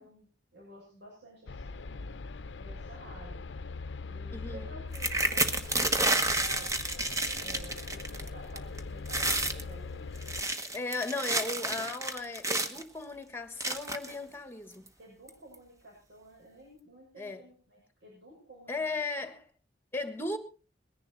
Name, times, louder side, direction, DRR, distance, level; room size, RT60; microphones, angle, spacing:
voice 1, 0.0-2.1 2.6-3.4 4.1-6.7 7.4-10.3 15.0-19.3, equal, 70° right, 6.4 m, -52 dB
sound 1, 1.5-10.4, left 3 dB, 80° left, 0.6 m, -41 dB
voice 2, 4.3-4.7 10.7-14.9 17.2-17.4 18.7-19.5 19.9-20.4, left 3 dB, 15° left, 1.6 m, -36 dB
sound 2, 4.9-8.3 8.6-8.8 9.1-9.6 10.1-12.8 13.6-14.1 14.9-15.0 15.3-15.5, right 2 dB, 20° right, 1.2 m, -30 dB
21.0 x 10.5 x 4.2 m
head